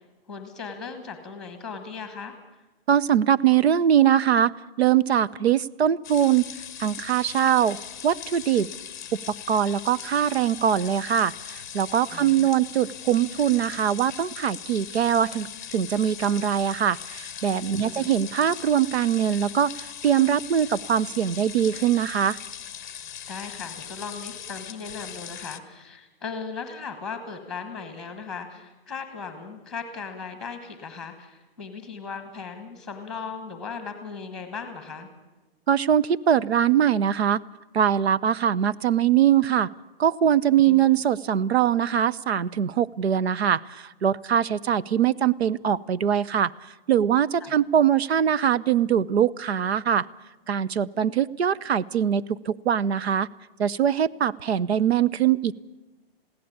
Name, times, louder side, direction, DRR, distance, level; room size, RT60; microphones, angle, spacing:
voice 1, 0.3-2.4 12.1-12.5 17.8-18.1 23.3-35.1 40.6-40.8 47.4-47.5, left 5 dB, ahead, 7 dB, 1.2 m, -37 dB
voice 2, 2.9-4.5 4.8-6.5 6.8-7.8 8.0-8.7 9.1-22.4 35.7-37.4 37.7-39.7 40.0-46.5 46.9-50.1 50.5-53.3 53.6-55.5, right 9 dB, 90° right, 17 dB, 0.8 m, -22 dB
sound 1, 6.0-25.6, left 9 dB, 20° left, 0.7 m, -40 dB
21.5 x 16.0 x 8.7 m, 1.1 s
hypercardioid pair, 180°, 31 cm